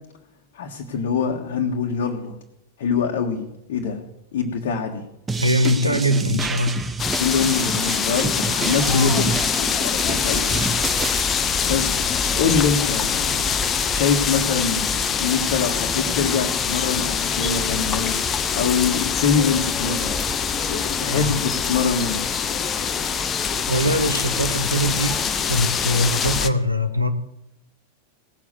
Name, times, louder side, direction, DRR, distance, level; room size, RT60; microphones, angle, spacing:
voice 1, 0.5-2.4 2.8-4.0 4.3-5.1 5.6-5.9 7.2-10.7 11.1-11.9 12.4-13.5 13.8-14.9 15.2-18.2 18.5-20.2 20.6-22.2, left 6 dB, 55° left, 0 dB, 1.6 m, -24 dB
sound 1, 5.3-11.2, right 3 dB, 15° right, 1.2 m, -29 dB
voice 2, 5.4-6.8 8.8-9.2 21.1-21.4 23.7-27.1, equal, 85° right, 9 dB, 1.3 m, -22 dB
sound 2, 7.0-26.5, left 6 dB, 25° left, 1.0 m, -24 dB
17.5 x 7.3 x 7.9 m, 0.87 s
figure-of-eight pair, 90°, 0 cm